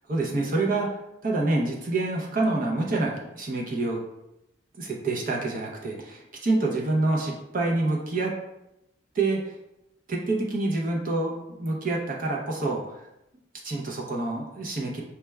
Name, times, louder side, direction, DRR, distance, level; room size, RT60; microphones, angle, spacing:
voice 1, 0.1-0.9 1.2-4.0 4.8-8.3 9.1-9.4 10.1-13.0 13.6-15.0, right 2 dB, 45° right, -1 dB, 0.6 m, -27 dB
5.6 x 2.3 x 3.1 m, 0.87 s
head